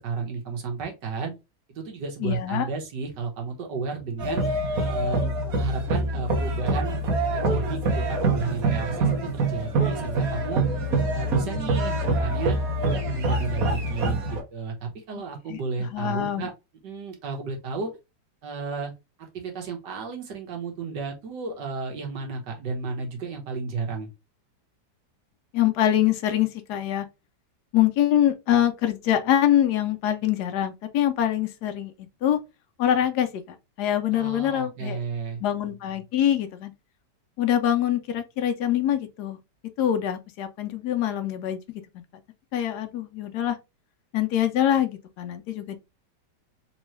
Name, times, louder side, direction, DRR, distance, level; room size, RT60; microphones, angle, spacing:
voice 1, 0.0-1.3 1.7-4.4 4.9-7.0 7.3-10.7 11.1-12.6 12.9-16.5 16.8-17.9 18.4-18.9 19.2-24.1 34.1-35.4, right 4 dB, 80° right, 1.7 m, -33 dB
voice 2, 2.2-2.7 15.1-15.2 15.5-15.6 15.9-16.5 25.5-27.1 27.7-31.9 32.2-32.4 32.8-35.0 35.4-36.7 37.4-39.4 39.8-41.6 42.5-43.6 44.1-45.8, left 11 dB, 75° left, 1.1 m, -24 dB
sound 1, 4.2-14.4, right 2 dB, 60° right, 1.6 m, -25 dB
3.7 x 3.1 x 3.0 m
omnidirectional pair, 1.9 m